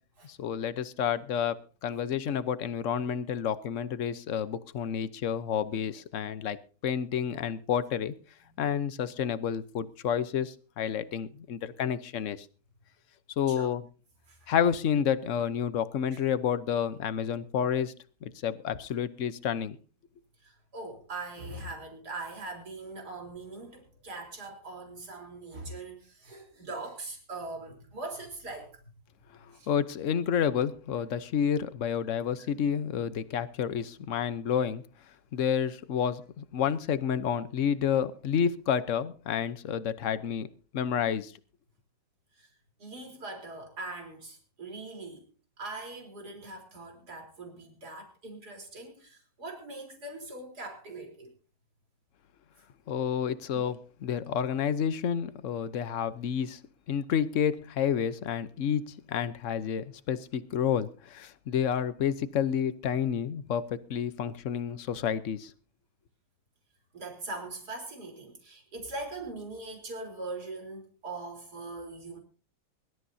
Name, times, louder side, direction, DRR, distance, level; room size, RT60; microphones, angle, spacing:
voice 1, 0.3-6.6 6.8-8.1 8.6-12.5 13.4-13.8 14.5-17.9 18.2-19.8 29.7-34.8 35.3-40.5 40.7-41.3 52.9-56.6 56.9-65.5, left 8 dB, 55° left, 14 dB, 1.1 m, -30 dB
voice 2, 20.4-28.7 29.5-29.7 42.4-42.5 42.8-45.3 45.6-51.3 66.9-72.2, right 2 dB, 60° right, 2 dB, 4.4 m, -41 dB
23.5 x 13.0 x 2.7 m, 0.36 s
omnidirectional pair, 1.9 m